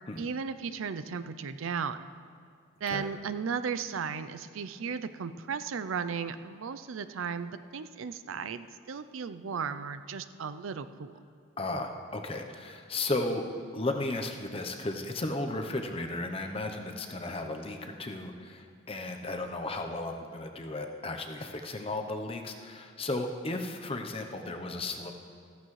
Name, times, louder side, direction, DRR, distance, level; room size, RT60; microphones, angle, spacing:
voice 1, 0.2-2.1 2.8-11.1, right 6 dB, 85° right, 11 dB, 0.5 m, -35 dB
voice 2, 11.6-25.1, left 2 dB, 30° left, 4 dB, 0.8 m, -35 dB
14.5 x 14.0 x 3.2 m, 2.3 s
head